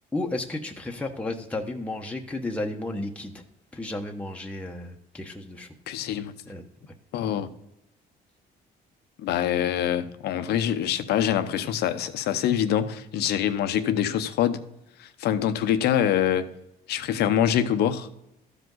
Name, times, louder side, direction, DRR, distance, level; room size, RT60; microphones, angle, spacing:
voice 1, 0.1-3.4 3.7-5.7 6.5-6.6, left 2 dB, 5° left, 0.9 m, -33 dB
voice 2, 5.9-6.3 7.1-7.5 9.2-14.6 15.0-16.5 16.9-18.1, left 10 dB, 75° left, 0.8 m, -25 dB
13.5 x 5.1 x 3.9 m
cardioid pair, 110°, 17 cm